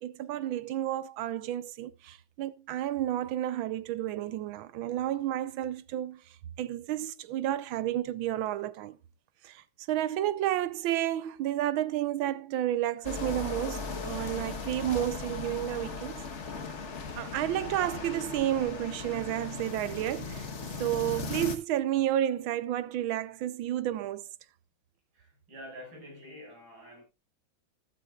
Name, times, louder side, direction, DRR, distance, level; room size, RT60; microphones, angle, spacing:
voice 1, 0.0-9.0 9.4-16.2 17.1-20.5 20.8-24.3, right 12 dB, 90° right, 1.5 m, -31 dB
sound 1, 13.0-21.6, left 4 dB, 40° left, 1.3 m, -38 dB
voice 2, 25.1-27.0, equal, 75° right, 6.7 m, -47 dB
14.0 x 12.0 x 2.4 m
omnidirectional pair, 2.1 m